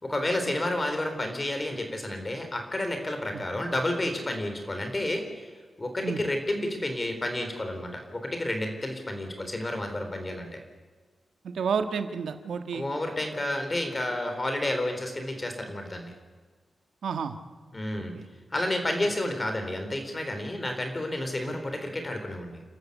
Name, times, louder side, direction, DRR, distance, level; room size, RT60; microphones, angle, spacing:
voice 1, 0.0-5.5 5.8-10.5 12.7-16.1 17.7-18.2 18.5-22.6, left 1 dB, 20° left, 5 dB, 4.1 m, -30 dB
voice 2, 11.4-12.9 17.0-17.4 18.1-18.2, right 6 dB, 85° right, 8 dB, 1.6 m, -30 dB
29.5 x 13.0 x 8.3 m, 1.5 s
wide cardioid pair, 140°, 0 cm